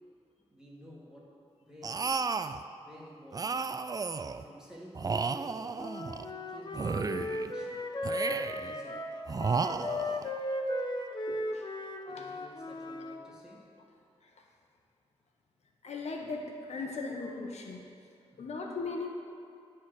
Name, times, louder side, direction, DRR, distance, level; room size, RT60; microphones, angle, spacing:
voice 1, 0.5-2.5 2.8-3.8 4.4-5.9 6.3-7.9 8.4-10.2 12.1-13.7 18.3-18.5, equal, 5° right, -5 dB, 2.2 m, -52 dB
sound 1, 1.8-2.6 3.3-4.4 4.9-6.3 6.7-7.5 8.0-8.7 9.3-10.3, right 4 dB, 35° right, 0.4 m, -33 dB
Wind instrument woodwind instrument, 5.8-13.2, left 1 dB, 40° left, 0.9 m, -36 dB
voice 2, 11.3-11.7 12.1-12.2 14.2-14.3 15.8-17.9 18.4-19.1, left 3 dB, 80° left, 1 dB, 1.1 m, -38 dB
12.0 x 4.3 x 7.8 m, 2.6 s
wide cardioid pair, 90°, 11 cm